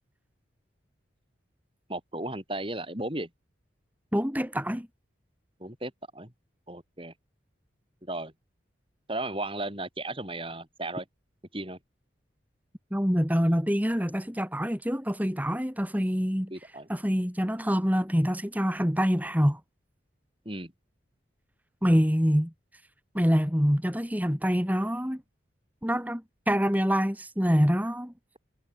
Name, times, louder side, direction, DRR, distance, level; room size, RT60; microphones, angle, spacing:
voice 1, 1.9-3.3 5.6-6.3 6.7-7.1 8.1-8.3 9.1-11.0 11.5-11.8 16.5-16.9 20.5-20.7, right 2 dB, 25° right, 7.1 m, -35 dB
voice 2, 4.1-4.9 12.9-16.5 16.9-19.6 21.8-22.5 23.1-25.2 25.8-28.1, equal, 10° right, 6.2 m, -25 dB
head